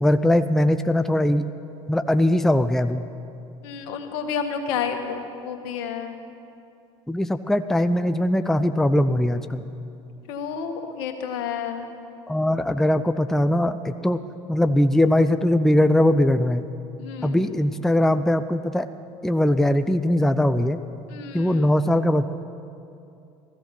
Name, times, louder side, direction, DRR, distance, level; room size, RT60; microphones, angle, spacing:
voice 1, 0.0-1.5 1.9-3.0 7.1-9.6 12.3-14.2 14.5-16.7 17.2-18.9 19.2-20.8 21.3-22.3, left 1 dB, ahead, 9 dB, 0.5 m, -20 dB
voice 2, 3.6-6.2 10.3-11.9 17.0-17.4 21.1-21.7, left 7 dB, 70° left, 5 dB, 1.6 m, -30 dB
16.5 x 14.5 x 6.0 m, 2.7 s
hypercardioid pair, 75°, 16 cm